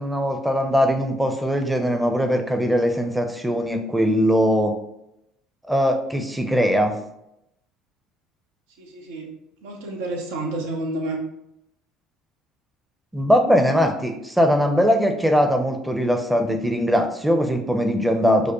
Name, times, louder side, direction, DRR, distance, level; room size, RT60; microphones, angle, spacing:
voice 1, 0.0-4.7 5.7-7.0 13.1-18.5, equal, 5° right, 5 dB, 0.6 m, -20 dB
voice 2, 8.8-9.3 9.6-11.2, right 2 dB, 80° right, 2 dB, 0.7 m, -30 dB
4.9 x 2.1 x 3.0 m, 0.81 s
hypercardioid pair, 75°, 0 cm